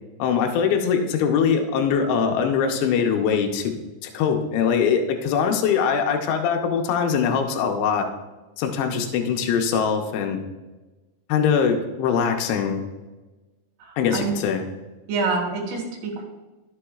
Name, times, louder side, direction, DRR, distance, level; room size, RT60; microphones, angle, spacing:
voice 1, 0.2-3.7 4.0-8.1 8.6-10.4 11.3-12.8 14.0-14.7, left 6 dB, 85° left, 3 dB, 3.1 m, -22 dB
voice 2, 13.8-14.3 15.1-16.2, right 4 dB, 70° right, 0 dB, 3.8 m, -27 dB
13.0 x 7.3 x 2.4 m, 1.2 s
omnidirectional pair, 5.1 m